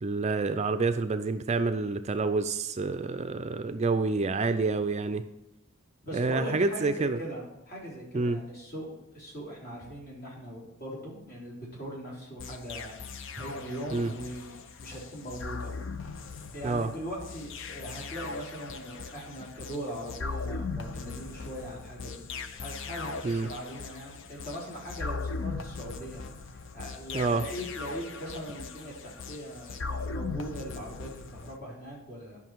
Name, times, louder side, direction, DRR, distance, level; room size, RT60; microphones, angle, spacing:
voice 1, 0.0-5.2 6.1-7.2 8.1-8.4 13.9-14.1 16.6-16.9 23.2-23.5 27.1-27.4, right 3 dB, 35° right, 10 dB, 0.4 m, -28 dB
voice 2, 6.0-13.0 13.3-15.7 16.5-32.4, equal, 50° left, -4 dB, 3.5 m, -40 dB
sound 1, 12.4-31.6, left 4 dB, 65° left, 0.6 m, -39 dB
11.5 x 5.8 x 4.6 m, 0.87 s
head